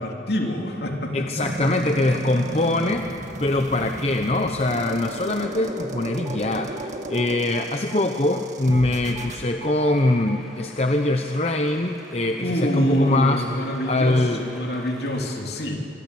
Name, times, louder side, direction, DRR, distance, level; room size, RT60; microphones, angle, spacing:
voice 1, 0.0-1.7 12.4-15.8, equal, 55° left, 1 dB, 3.3 m, -26 dB
voice 2, 1.1-3.1 3.4-6.7 7.1-13.4 13.9-14.4, left 2 dB, 35° left, 5 dB, 0.9 m, -23 dB
sound 1, 1.4-9.4, right 2 dB, 40° right, 2.0 m, -34 dB
sound 2, 6.2-6.4 6.8-6.9 7.1-7.6 7.9-8.0 8.3-8.4 8.7-8.8 9.1-9.3 9.6-9.9 10.3-10.4, right 4 dB, 20° right, 1.6 m, -40 dB
sound 3, 7.6-15.4, equal, ahead, 5.2 m, -47 dB
26.5 x 24.5 x 8.5 m, 2.6 s
head